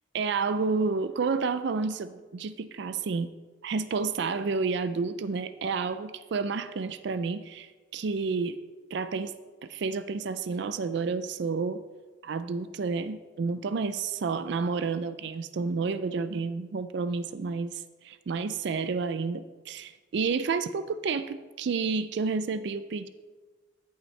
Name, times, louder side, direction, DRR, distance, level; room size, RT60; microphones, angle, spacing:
voice 1, 0.1-3.3 3.6-8.6 8.9-9.3 9.6-11.8 12.2-23.1, right 4 dB, 65° right, 13 dB, 0.4 m, -30 dB
16.0 x 5.6 x 3.2 m, 1.3 s
head